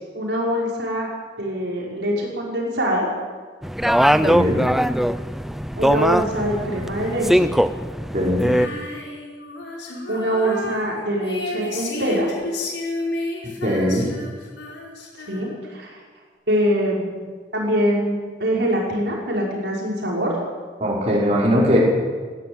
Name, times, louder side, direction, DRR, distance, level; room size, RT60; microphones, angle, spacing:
voice 1, 0.1-1.1 1.4-3.1 5.8-7.5 10.1-12.3 15.3-16.0 16.5-17.1 17.5-20.3, equal, 65° right, -3 dB, 5.8 m, -24 dB
sound 1, 3.6-8.7, equal, ahead, 0.5 m, -20 dB
voice 2, 4.2-4.6 8.1-8.5 13.6-14.1 20.8-21.8, equal, 35° right, -5 dB, 5.6 m, -20 dB
Female singing, 8.4-15.8, left 2 dB, 70° left, 4.8 m, -31 dB
19.0 x 16.5 x 9.1 m, 1.5 s
head